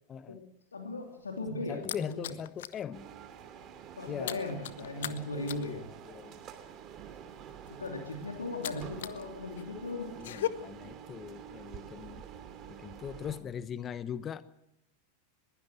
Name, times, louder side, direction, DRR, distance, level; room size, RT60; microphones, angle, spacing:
voice 1, 0.1-0.4 1.7-3.1 4.1-4.4 4.8-5.8 6.1-6.4 10.2-12.2 12.7-14.4, left 8 dB, 25° left, 16 dB, 1.0 m, -41 dB
voice 2, 0.7-2.3 4.0-5.9 7.8-10.1, left 2 dB, 75° left, 3 dB, 2.8 m, -38 dB
sound 1, 1.0-2.8 3.2-3.4 3.7-9.2 9.5-10.5, left 13 dB, 60° left, 1.0 m, -39 dB
sound 2, 2.9-13.4, right 9 dB, 30° right, 2.8 m, -48 dB
21.5 x 16.0 x 7.6 m, 0.82 s
figure-of-eight pair, 90°, 0 cm